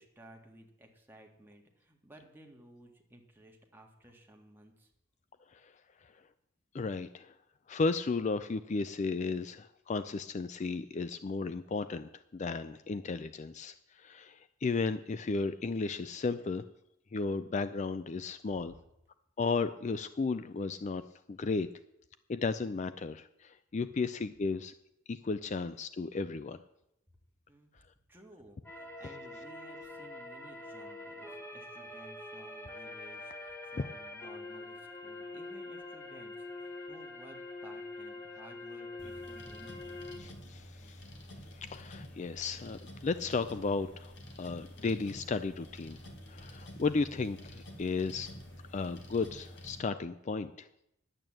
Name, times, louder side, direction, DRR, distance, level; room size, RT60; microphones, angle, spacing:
voice 1, 0.0-4.9 18.5-18.6 27.5-27.7 28.1-40.0, right 1 dB, 10° right, 1 dB, 1.8 m, -56 dB
voice 2, 6.7-7.3 7.7-16.6 17.1-18.7 19.4-21.0 21.3-21.7 22.3-24.7 25.1-26.6 40.2-41.0 41.5-44.1 44.4-46.0 46.3-48.3 48.7-50.7, left 4 dB, 35° left, 12 dB, 0.4 m, -34 dB
sound 1, 28.6-40.2, left 2 dB, 10° left, 1.6 m, -45 dB
sound 2, 39.0-49.8, equal, 60° left, 2.2 m, -49 dB
10.5 x 8.9 x 7.7 m, 0.82 s
head